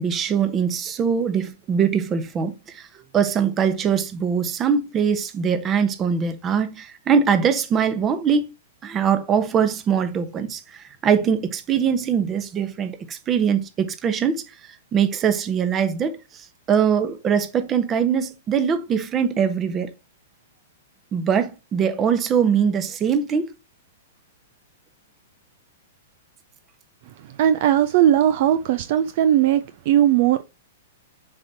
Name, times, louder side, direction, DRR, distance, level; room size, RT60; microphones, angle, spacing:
voice 1, 0.0-2.9 3.1-8.5 8.8-14.4 14.9-19.9 21.1-23.5, right 7 dB, 25° right, 1.1 m, -22 dB
voice 2, 27.4-30.4, right 11 dB, 50° right, 0.5 m, -18 dB
7.0 x 5.4 x 2.8 m
hypercardioid pair, 110°, 0 cm